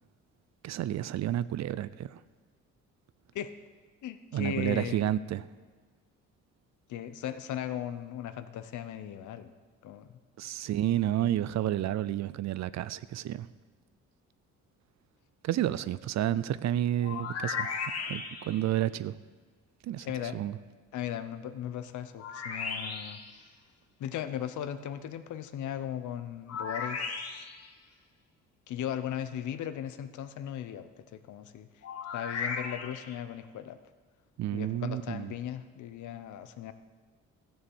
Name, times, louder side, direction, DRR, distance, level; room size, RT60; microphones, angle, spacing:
voice 1, 0.6-2.2 4.3-5.5 10.4-13.5 15.4-17.7 18.1-19.1 19.8-20.6 34.4-35.3, right 12 dB, 65° right, 0.5 m, -30 dB
voice 2, 4.0-5.0 6.9-9.5 9.8-10.1 20.0-20.4 20.9-23.2 24.0-27.4 28.7-31.7 32.1-33.8 34.5-36.7, left 10 dB, 75° left, 0.9 m, -37 dB
sound 1, 17.0-18.7 22.2-23.4 26.5-27.7 31.8-33.2, left 5 dB, 55° left, 1.5 m, -36 dB
14.0 x 7.1 x 7.2 m
cardioid pair, 90°, 30 cm